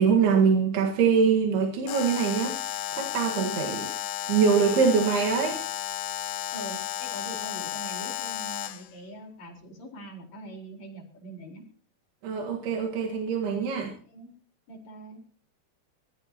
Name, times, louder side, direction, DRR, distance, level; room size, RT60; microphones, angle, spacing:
voice 1, 0.0-2.6 2.9-3.9 4.3-5.6 12.2-14.0, right 6 dB, 80° right, 0 dB, 3.8 m, -23 dB
Alarm, 1.9-8.9, left 13 dB, 75° left, 2.4 m, -33 dB
voice 2, 6.5-11.6 14.1-14.3 14.7-15.2, right 1 dB, 45° left, 0 dB, 5.5 m, -42 dB
23.5 x 18.5 x 3.0 m, 0.42 s
omnidirectional pair, 4.5 m